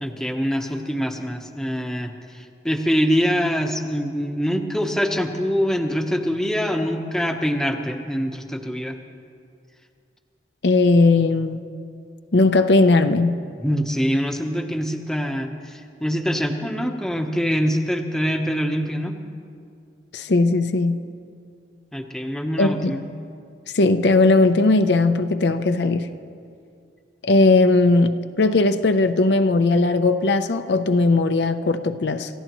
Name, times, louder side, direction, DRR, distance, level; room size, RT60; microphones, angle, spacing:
voice 1, 0.0-9.0 13.6-19.1 21.9-23.0, equal, 5° left, 3 dB, 0.9 m, -24 dB
voice 2, 10.6-11.6 12.3-13.4 20.1-21.0 22.6-23.0 23.7-26.1 27.2-32.3, left 3 dB, 70° left, 8 dB, 0.7 m, -18 dB
28.5 x 14.5 x 3.1 m, 2.3 s
head